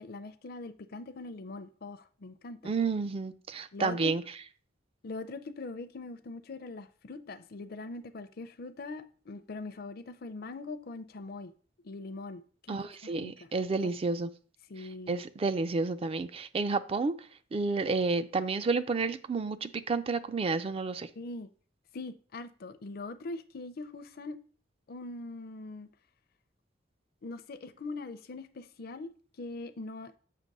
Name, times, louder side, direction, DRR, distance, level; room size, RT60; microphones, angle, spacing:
voice 1, 0.0-2.7 3.7-4.1 5.0-11.5 11.8-12.8 13.0-13.5 13.8-13.9 14.7-15.2 21.2-21.5 21.9-24.4 24.9-25.9 27.2-29.1 29.4-30.1, left 3 dB, 55° left, 0.5 m, -42 dB
voice 2, 2.6-4.2 12.7-14.3 14.8-17.2 17.5-21.1, right 4 dB, 30° right, 0.3 m, -30 dB
7.6 x 2.9 x 5.3 m
head